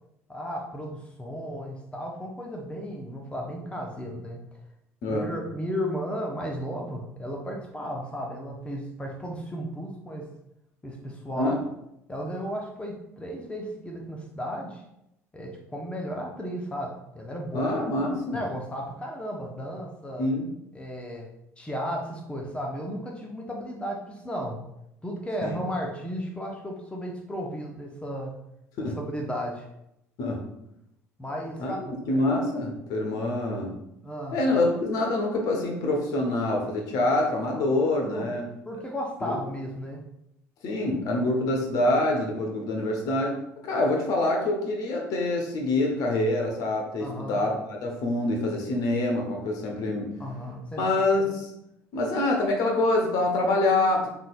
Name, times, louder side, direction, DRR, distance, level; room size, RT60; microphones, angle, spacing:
voice 1, 0.3-4.6 5.1-10.3 10.8-11.6 12.1-14.8 15.3-20.3 20.7-21.3 21.6-24.6 25.0-28.3 28.8-29.7 31.2-31.8 34.0-34.4 38.1-38.3 38.7-40.0 47.0-47.4 50.2-50.8, equal, 15° left, 0 dB, 0.9 m, -34 dB
voice 2, 17.5-18.4 20.2-20.5 25.4-25.5 28.8-29.0 30.2-30.4 31.6-33.7 34.3-38.4 39.2-39.3 40.6-43.3 43.6-50.1 50.8-51.5 51.9-54.1, left 2 dB, 50° left, 1 dB, 1.1 m, -26 dB
5.7 x 3.5 x 2.4 m, 0.81 s
figure-of-eight pair, 60°, 8 cm